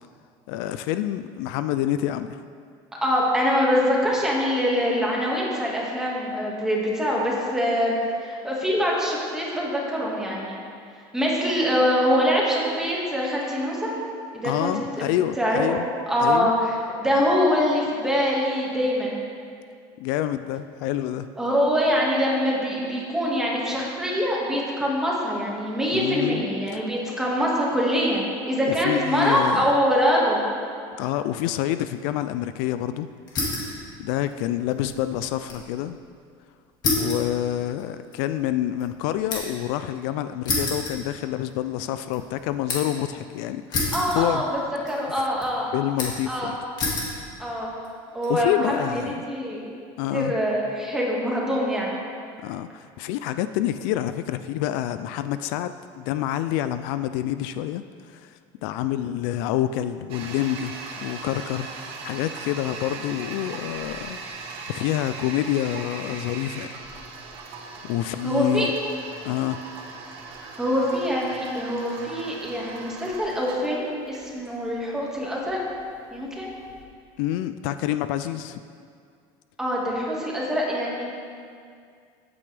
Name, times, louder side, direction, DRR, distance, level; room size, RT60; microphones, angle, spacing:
voice 1, 0.5-2.4 14.4-15.9 16.2-16.5 20.0-21.3 25.9-26.4 26.7-26.8 28.7-29.7 31.0-33.1 34.0-36.0 37.0-44.4 45.7-46.6 48.3-49.3 50.0-50.4 52.4-60.7 61.0-64.2 64.7-66.7 67.8-68.7 69.2-69.6 77.2-78.6, left 12 dB, 70° left, 11 dB, 0.4 m, -27 dB
voice 2, 3.0-7.9 8.2-10.6 11.1-13.9 14.3-15.1 15.4-15.6 16.1-19.2 21.4-30.4 43.9-44.6 44.9-45.7 46.3-46.6 47.4-47.7 48.1-49.8 50.1-51.9 68.2-68.7 70.4-75.6 76.1-76.5 79.6-81.0, equal, 5° right, -4 dB, 1.8 m, -24 dB
sound 1, 33.3-33.8 34.1-35.7 36.0-36.1 36.8-39.7 40.5-41.6 42.0-43.0 43.7-44.6 44.9-45.5 46.0-46.3 46.8-47.2 47.8-48.3, left 3 dB, 35° left, 2.1 m, -29 dB
Toilet flush, 60.1-76.8, right 4 dB, 50° right, 1.3 m, -39 dB
14.5 x 8.7 x 3.4 m, 2.3 s
cardioid pair, 160°, 12 cm